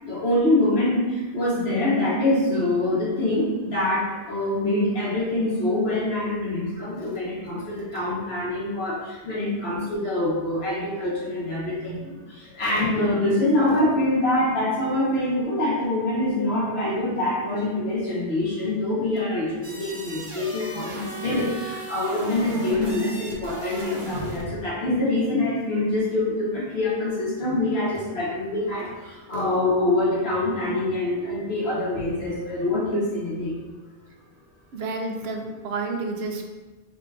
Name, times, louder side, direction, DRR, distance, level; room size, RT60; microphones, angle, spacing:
voice 1, 0.0-33.6, left 1 dB, 80° left, -6 dB, 1.5 m, -25 dB
sound 1, 19.6-24.5, right 2 dB, 35° right, 0.7 m, -36 dB
voice 2, 34.7-36.5, right 3 dB, 85° right, 3 dB, 0.9 m, -30 dB
3.7 x 2.4 x 4.6 m, 1.2 s
omnidirectional pair, 1.0 m